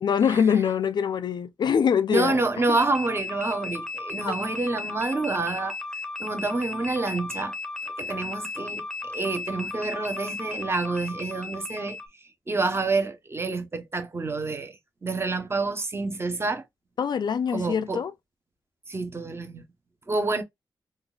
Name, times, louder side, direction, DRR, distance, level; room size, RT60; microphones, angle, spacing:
voice 1, 0.0-2.4 2.7-2.8 4.2-4.3 17.0-18.1, left 7 dB, 60° left, 0.4 m, -24 dB
voice 2, 2.1-5.8 6.2-7.5 8.0-12.0 12.5-14.7 15.0-16.6 17.5-18.0 18.9-19.6 20.1-20.4, right 3 dB, 30° right, 0.9 m, -28 dB
sound 1, 2.8-12.1, left 3 dB, 5° left, 0.7 m, -35 dB
3.7 x 2.4 x 2.3 m
cardioid pair, 70°, 8 cm